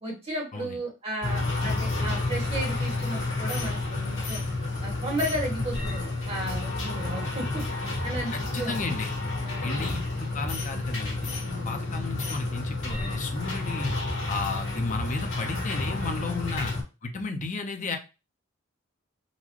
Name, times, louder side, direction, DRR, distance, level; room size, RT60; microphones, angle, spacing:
voice 1, 0.0-4.4 4.8-7.6 8.0-8.3 8.6-8.8 9.4-9.8 11.4-11.9 16.1-16.5, right 1 dB, 30° right, -2 dB, 1.4 m, -34 dB
sound 1, 1.2-16.8, left 2 dB, 80° left, 1.5 m, -30 dB
voice 2, 8.3-9.1 9.6-11.3 11.7-13.9 14.3-16.7 17.0-18.0, left 3 dB, 40° left, 6 dB, 0.6 m, -33 dB
3.8 x 2.2 x 3.1 m, 0.29 s
head